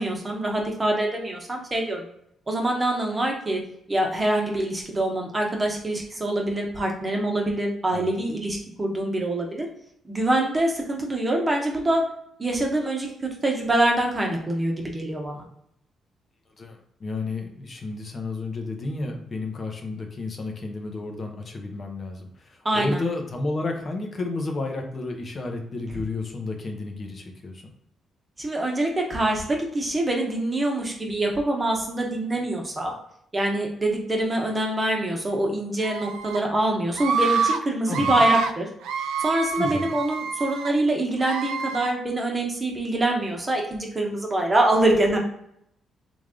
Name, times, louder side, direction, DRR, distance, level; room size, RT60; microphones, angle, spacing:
voice 1, 0.0-2.1 2.5-3.6 3.9-9.7 10.1-12.0 12.4-13.1 13.4-15.4 22.6-23.0 28.4-32.9 33.3-38.7 39.2-45.2, right 1 dB, 25° right, 1 dB, 1.0 m, -25 dB
voice 2, 16.6-27.7 37.9-38.3 39.6-39.9, left 2 dB, 40° left, 3 dB, 0.7 m, -32 dB
Screaming, 35.8-36.4 36.9-37.6 37.9-38.5 38.8-40.7 41.2-41.9, right 5 dB, 90° right, 0.3 m, -26 dB
3.3 x 2.5 x 3.7 m, 0.73 s
cardioid pair, 85°, 0 cm